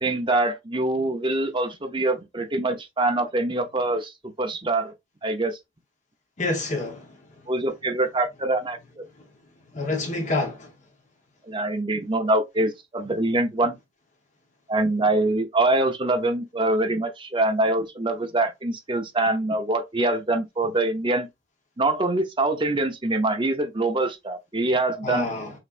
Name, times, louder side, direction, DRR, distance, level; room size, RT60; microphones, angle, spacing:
voice 1, 0.0-4.1 4.4-4.9 5.2-5.6 7.5-9.0 11.4-13.8 14.7-21.3 21.8-25.3, right 2 dB, 25° right, 0.8 m, -24 dB
voice 2, 6.4-7.1 9.7-10.7 25.0-25.5, left 2 dB, 35° left, 1.2 m, -27 dB
5.8 x 3.2 x 2.5 m
head